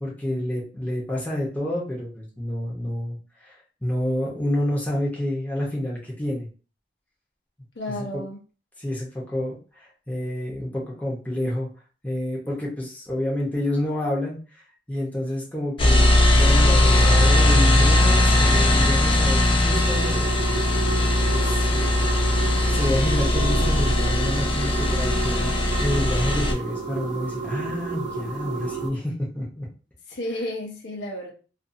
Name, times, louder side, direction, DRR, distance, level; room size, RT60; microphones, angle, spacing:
voice 1, 0.0-3.5 3.8-6.5 8.0-8.2 8.8-11.7 12.0-14.6 14.9-20.7 21.3-22.1 22.5-25.5 25.8-29.7, left 1 dB, 10° left, -5 dB, 0.8 m, -29 dB
voice 2, 7.8-8.4 30.1-31.3, left 1 dB, 75° left, 0 dB, 0.8 m, -32 dB
sound 1, 15.8-26.5, left 1 dB, 30° left, 0.5 m, -19 dB
sound 2, 19.7-28.9, right 4 dB, 70° right, 0.8 m, -31 dB
2.5 x 2.5 x 2.6 m, 0.36 s
head